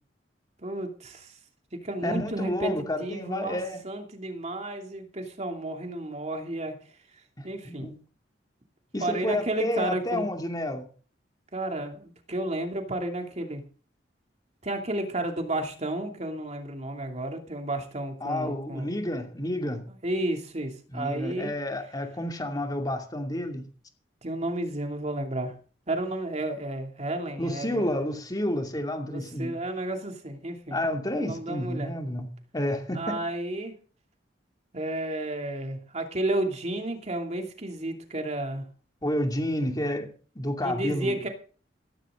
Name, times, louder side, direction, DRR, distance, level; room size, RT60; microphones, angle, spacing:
voice 1, 0.6-1.3 1.8-3.6 3.8-6.8 7.4-7.9 9.0-10.3 11.5-13.6 14.6-18.9 19.9-21.5 24.2-25.5 25.9-27.9 29.1-30.8 31.1-31.9 32.9-33.8 34.7-38.7 40.6-41.3, right 1 dB, 40° right, 2.7 m, -32 dB
voice 2, 2.0-3.8 7.4-8.0 8.9-10.9 18.2-19.9 20.9-23.7 27.4-29.5 30.7-33.2 39.0-40.1 40.3-41.2, left 1 dB, 20° left, 2.6 m, -30 dB
15.5 x 14.5 x 3.8 m
head